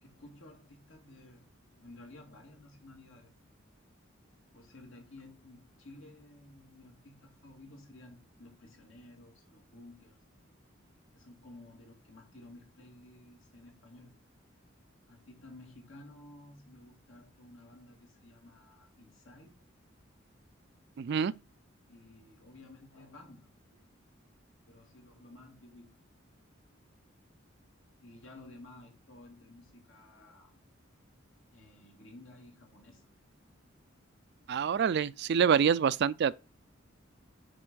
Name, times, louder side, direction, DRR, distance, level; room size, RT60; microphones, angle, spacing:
voice 1, 0.0-1.4 1.8-3.3 4.5-10.2 11.1-14.1 15.1-19.5 21.9-23.8 24.7-25.9 28.0-30.5 31.5-33.0, left 2 dB, 75° left, 2.3 m, -54 dB
voice 2, 21.0-21.3 34.5-36.3, right 7 dB, 55° right, 0.4 m, -26 dB
6.2 x 4.4 x 6.2 m
head